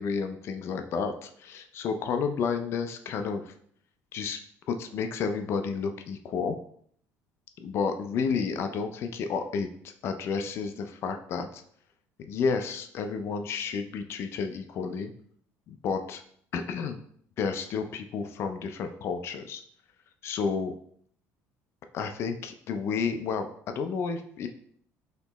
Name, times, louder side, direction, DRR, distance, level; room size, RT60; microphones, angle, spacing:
voice 1, 0.0-3.5 4.1-4.4 4.7-6.6 7.6-11.6 12.3-15.1 15.7-16.2 16.5-17.0 17.4-19.6 20.2-20.7 21.9-24.5, left 5 dB, 45° left, 7 dB, 0.4 m, -31 dB
4.2 x 2.9 x 4.0 m, 0.63 s
cardioid pair, 150°, 6 cm